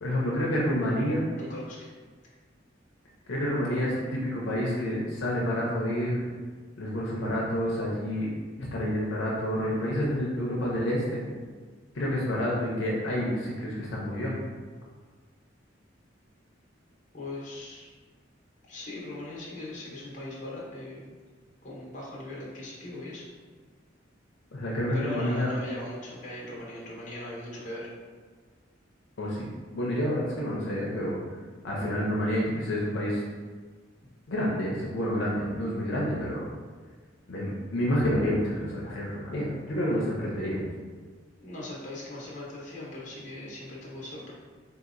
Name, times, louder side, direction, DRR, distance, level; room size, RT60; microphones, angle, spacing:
voice 1, 0.0-1.3 3.3-6.2 6.8-8.3 8.6-11.2 11.9-14.4 24.5-25.5 29.2-31.2 31.6-33.2 34.3-36.4 37.3-40.6, equal, 75° left, -5 dB, 0.6 m, -29 dB
voice 2, 1.4-1.9 17.1-17.9 18.7-21.1 21.6-23.2 24.9-27.9 41.4-44.3, left 1 dB, 40° left, -5 dB, 0.9 m, -40 dB
3.6 x 2.8 x 2.5 m, 1.5 s
head